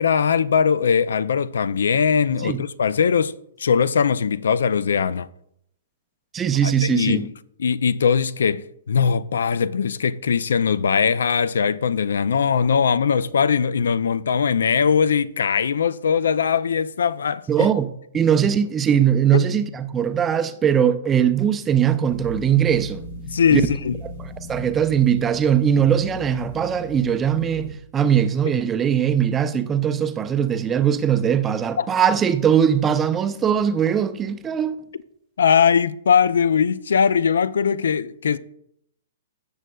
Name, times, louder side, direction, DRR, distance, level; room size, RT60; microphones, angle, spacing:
voice 1, 0.0-3.3 3.6-5.3 6.6-7.3 7.6-17.7 19.3-19.4 23.3-24.0 31.8-31.9 35.4-38.4, left 6 dB, 85° left, 0.4 m, -20 dB
voice 2, 6.3-7.3 17.5-23.0 23.5-23.6 24.2-34.8, right 8 dB, 10° right, 0.4 m, -20 dB
sound 1, 22.1-27.7, equal, 60° left, 1.5 m, -37 dB
15.5 x 6.3 x 2.3 m
hypercardioid pair, 165°, 0 cm